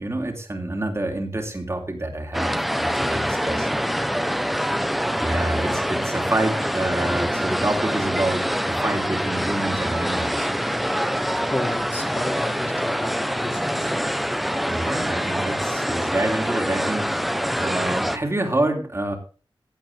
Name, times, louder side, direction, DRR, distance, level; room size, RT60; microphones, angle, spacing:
voice 1, 0.0-3.7 5.2-10.5 14.6-17.2 17.6-19.2, right 1 dB, 30° right, 2 dB, 3.3 m, -27 dB
sound 1, 2.3-18.2, equal, ahead, 1.2 m, -25 dB
voice 2, 11.4-14.0, left 1 dB, 25° left, 2 dB, 3.0 m, -33 dB
16.0 x 9.0 x 3.6 m, 0.35 s
wide cardioid pair, 85°, 9 cm